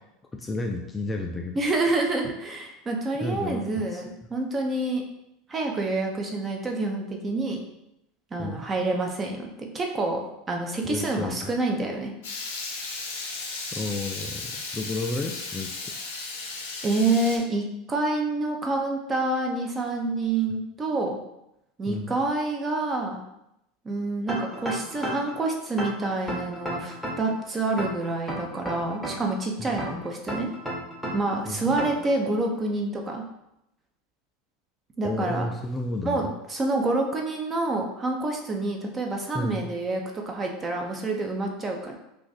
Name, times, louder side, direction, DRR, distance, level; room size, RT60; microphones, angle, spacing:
voice 1, 0.3-1.6 3.2-4.0 8.4-8.6 10.8-11.5 13.7-15.9 21.9-22.1 29.6-29.9 31.5-31.8 35.0-36.3 39.3-39.7, left 2 dB, 15° left, 2 dB, 0.3 m, -32 dB
voice 2, 1.6-5.0 5.5-7.6 8.3-10.2 10.5-12.1 16.8-21.2 21.8-23.2 23.8-30.5 31.1-33.2 35.0-35.5 36.0-42.0, right 2 dB, 25° right, 2 dB, 0.7 m, -27 dB
Water tap faucet / Liquid, 12.2-17.4, left 3 dB, 75° left, 0.6 m, -35 dB
sound 1, 24.3-25.4 25.8-27.4 27.8-29.4 29.8-31.4 31.8-32.1, right 1 dB, 5° right, 1.0 m, -32 dB
2.5 x 2.4 x 4.0 m, 0.83 s
hypercardioid pair, 85°, 0 cm